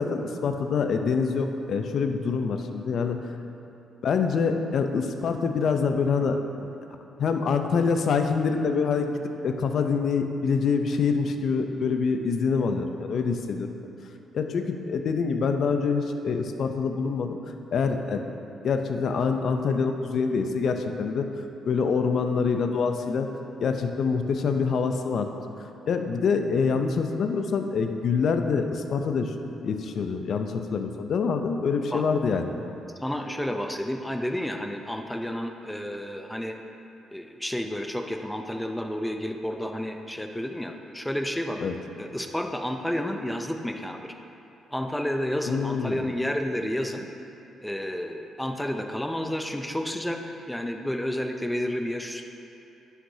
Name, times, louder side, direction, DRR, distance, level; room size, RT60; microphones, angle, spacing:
voice 1, 0.0-3.2 4.0-6.7 7.2-13.8 14.3-17.4 17.7-18.2 18.6-21.3 21.7-23.3 23.6-25.3 25.8-29.3 29.6-32.4 41.6-41.7 45.5-46.1, left 5 dB, 60° left, 6 dB, 0.6 m, -25 dB
voice 2, 33.0-36.6 37.1-41.7 42.0-44.1 44.7-47.1 47.6-50.2 50.5-52.3, equal, 5° left, 4 dB, 0.5 m, -31 dB
11.5 x 5.9 x 2.8 m, 2.9 s
cardioid pair, 90°, 0 cm